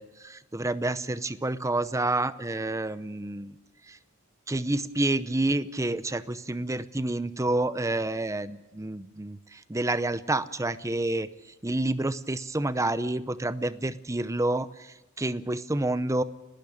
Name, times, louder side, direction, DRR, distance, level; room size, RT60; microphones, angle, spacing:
voice 1, 0.0-3.5 3.8-4.0 4.5-16.2, right 2 dB, 15° right, 14 dB, 0.7 m, -29 dB
30.0 x 12.0 x 8.9 m, 1.0 s
head